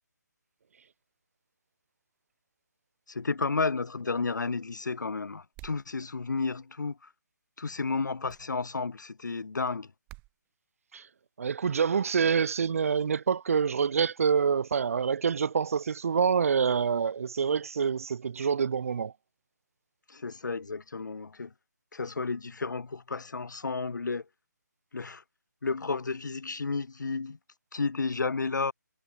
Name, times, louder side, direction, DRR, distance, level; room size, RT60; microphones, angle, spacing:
voice 1, 3.1-7.0 7.6-9.9 20.1-21.5 21.9-24.2 24.9-25.2 25.6-27.4 27.7-28.7, left 4 dB, 80° left, 1.1 m, -32 dB
sound 1, 5.5-5.9 8.3-8.5 10.1-10.3, right 22 dB, 15° right, 1.8 m, -48 dB
voice 2, 11.4-19.1, right 6 dB, 50° right, 0.5 m, -26 dB
figure-of-eight pair, 160°, 10 cm